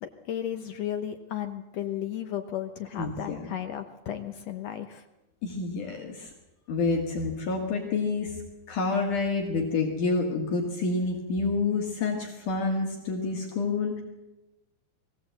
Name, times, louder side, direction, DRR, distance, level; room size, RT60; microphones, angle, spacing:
voice 1, 0.0-5.0, left 10 dB, 75° left, 7 dB, 1.5 m, -34 dB
voice 2, 3.0-3.5 5.4-6.3 6.7-8.4 8.7-14.0, left 3 dB, 60° left, 1 dB, 3.3 m, -28 dB
21.5 x 16.5 x 7.9 m, 1.0 s
omnidirectional pair, 4.3 m